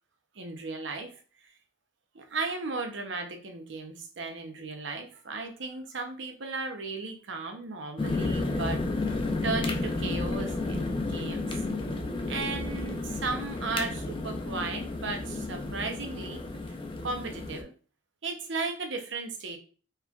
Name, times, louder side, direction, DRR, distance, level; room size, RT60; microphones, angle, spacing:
voice 1, 0.3-1.5 2.1-9.2 9.4-11.5 12.3-16.8 17.0-17.7 18.2-19.6, right 3 dB, 70° right, 5 dB, 0.7 m, -35 dB
sound 1, 8.0-17.6, left 2 dB, 25° left, 0.5 m, -32 dB
4.4 x 3.5 x 2.3 m, 0.39 s
head